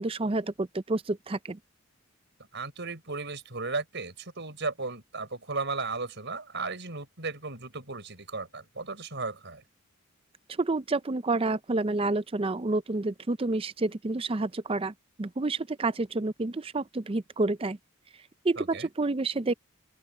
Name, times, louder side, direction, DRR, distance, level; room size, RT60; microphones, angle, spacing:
voice 1, 0.0-1.6 10.6-17.8 18.4-19.5, right 2 dB, 25° right, 0.5 m, -29 dB
voice 2, 2.5-9.6 18.6-18.9, right 3 dB, 55° right, 5.6 m, -35 dB
open air
head